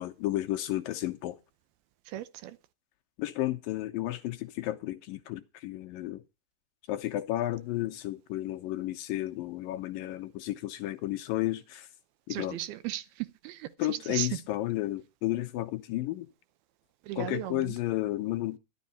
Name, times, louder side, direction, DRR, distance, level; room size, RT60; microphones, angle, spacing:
voice 1, 0.0-1.4 3.2-6.2 6.9-11.9 12.3-12.6 13.8-16.3 17.2-18.6, left 15 dB, 75° left, 2.4 m, -32 dB
voice 2, 2.1-2.6 12.3-14.4 17.0-17.8, right 14 dB, 85° right, 2.7 m, -36 dB
13.0 x 11.5 x 4.1 m
omnidirectional pair, 4.3 m